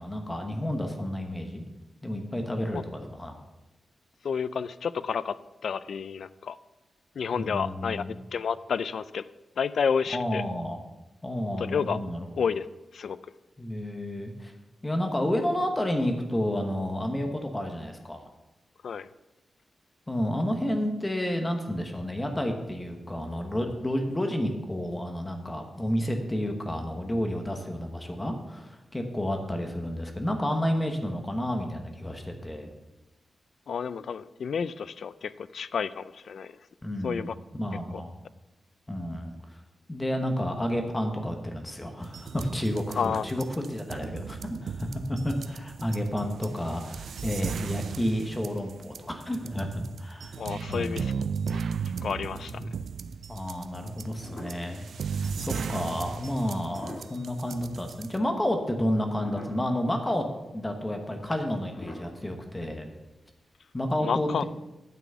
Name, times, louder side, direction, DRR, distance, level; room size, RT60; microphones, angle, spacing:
voice 1, 0.0-1.6 2.0-3.4 7.3-8.1 10.1-10.8 11.2-12.3 13.6-14.5 14.8-18.3 20.1-32.7 36.8-37.3 37.6-38.1 38.9-39.3 39.9-50.4 50.7-51.0 52.5-52.7 53.3-60.2 60.5-62.9 63.7-64.4, equal, 15° left, 4 dB, 1.1 m, -30 dB
voice 2, 4.2-5.4 5.6-6.6 7.2-8.0 8.3-9.2 9.6-10.4 11.6-12.0 12.4-12.7 12.9-13.2 18.8-19.1 33.7-36.5 37.0-37.3 43.0-43.2 50.4-51.1 52.0-52.5 64.0-64.4, left 6 dB, 65° left, 16 dB, 0.4 m, -30 dB
sound 1, 42.0-58.2, right 6 dB, 70° right, 0.3 m, -36 dB
sound 2, 52.6-52.9 53.3-53.4 53.8-54.9 55.4-55.5 56.5-58.0 58.4-58.9 59.2-59.9 60.3-60.4 60.6-60.8 61.6-63.2 63.5-63.6, left 1 dB, 35° left, 2.2 m, -45 dB
9.4 x 6.1 x 6.9 m, 1.0 s
wide cardioid pair, 175°, 0 cm